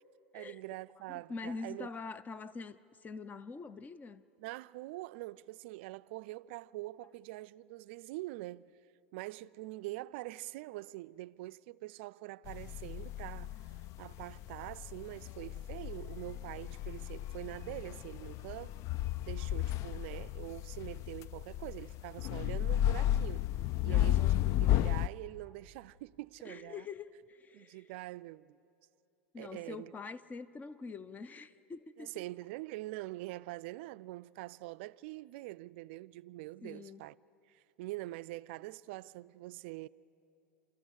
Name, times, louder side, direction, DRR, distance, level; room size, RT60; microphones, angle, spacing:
voice 1, 0.3-1.9 4.4-8.7 9.1-18.8 19.2-23.5 23.8-26.9 27.5-28.6 29.4-29.9 32.0-37.2 37.5-39.9, right 19 dB, 65° right, 0.4 m, -44 dB
voice 2, 1.1-4.2 23.9-24.5 26.4-27.8 29.3-32.2 36.6-37.1, left 4 dB, 25° left, 0.7 m, -45 dB
sound 1, 12.5-25.1, left 13 dB, 50° left, 0.4 m, -34 dB
28.5 x 14.0 x 6.4 m
hypercardioid pair, 95°, 7 cm